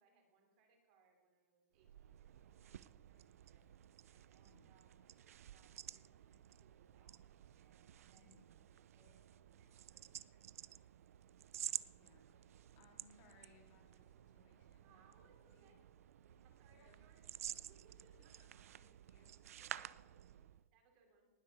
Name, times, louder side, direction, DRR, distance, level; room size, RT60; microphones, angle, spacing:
voice 1, 0.0-3.6 4.1-8.4 8.6-10.8 14.8-15.8 16.1-18.3 18.8-19.1 19.4-20.4 20.7-21.3, right 4 dB, 35° right, 2 dB, 3.3 m, -73 dB
sound 1, 1.8-20.7, right 11 dB, 70° right, 0.5 m, -52 dB
voice 2, 4.4-4.7 8.1-8.5 11.9-15.7 16.7-17.0 18.4-20.5, left 3 dB, 30° left, 1 dB, 2.6 m, -70 dB
19.5 x 8.2 x 6.8 m, 1.3 s
supercardioid pair, 170°, 8 cm